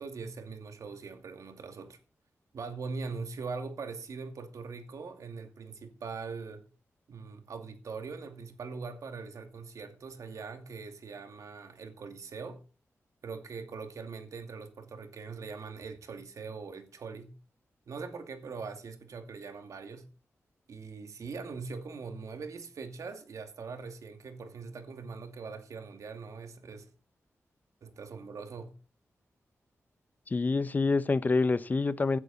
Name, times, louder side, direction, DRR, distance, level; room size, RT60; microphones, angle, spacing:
voice 1, 0.0-2.0 2.5-6.6 7.1-12.6 13.2-17.3 17.9-20.1 20.7-26.9 27.8-28.7, right 4 dB, 85° right, 2.4 m, -42 dB
voice 2, 30.3-32.2, left 3 dB, 30° left, 0.7 m, -27 dB
16.5 x 11.0 x 4.2 m
wide cardioid pair, 150°, 5 cm